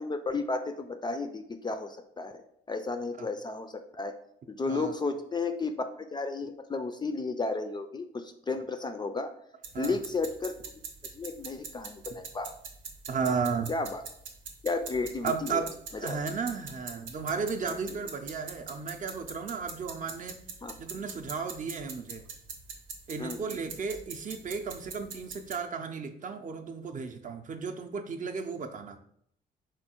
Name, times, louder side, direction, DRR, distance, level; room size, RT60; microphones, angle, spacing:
voice 1, 0.0-4.1 4.5-9.3 9.8-10.5 11.1-12.5 13.3-13.4 13.7-14.0 14.6-15.6 16.0-16.2 17.7-17.8 20.6-20.7 23.2-23.5, left 3 dB, 20° left, 7 dB, 0.3 m, -33 dB
sound 1, 9.6-25.6, right 5 dB, 85° right, 0.8 m, -44 dB
voice 2, 13.1-13.7 15.2-15.7 16.0-20.4 20.8-22.2 23.1-29.0, right 5 dB, 40° right, 5 dB, 0.5 m, -34 dB
4.4 x 2.3 x 4.4 m, 0.70 s
cardioid pair, 90°, 20 cm